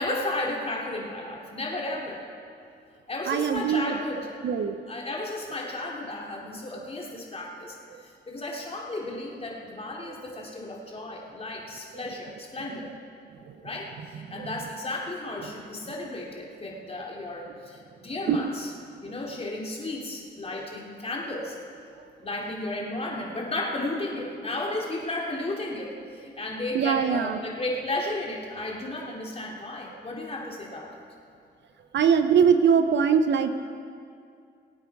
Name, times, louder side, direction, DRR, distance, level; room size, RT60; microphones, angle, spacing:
voice 1, 0.0-2.2 3.1-4.3 4.9-7.8 8.0-12.9 13.6-18.7 19.0-21.6 22.2-30.9, left 2 dB, 30° left, -1 dB, 2.9 m, -33 dB
voice 2, 3.3-4.0 4.4-4.8 13.5-13.6 14.3-14.5 18.3-18.5 22.0-22.1 26.7-27.4 31.9-33.5, right 7 dB, 70° right, 9 dB, 0.8 m, -22 dB
23.5 x 9.0 x 4.8 m, 2.3 s
cardioid pair, 90°, 19 cm